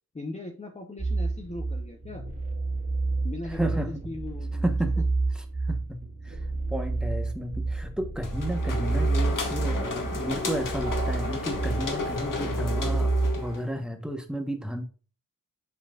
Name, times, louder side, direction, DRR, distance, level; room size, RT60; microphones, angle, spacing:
voice 1, 0.1-2.2 3.2-4.7, left 2 dB, 20° left, 0.9 m, -39 dB
sound 1, 1.0-13.5, right 3 dB, 25° right, 2.2 m, -29 dB
voice 2, 3.5-4.0 4.6-5.1 5.3-6.4 6.7-14.8, right 1 dB, ahead, 1.1 m, -32 dB
sound 2, 8.2-13.7, left 3 dB, 65° left, 1.9 m, -33 dB
7.7 x 5.6 x 2.4 m
wide cardioid pair, 135°, 34 cm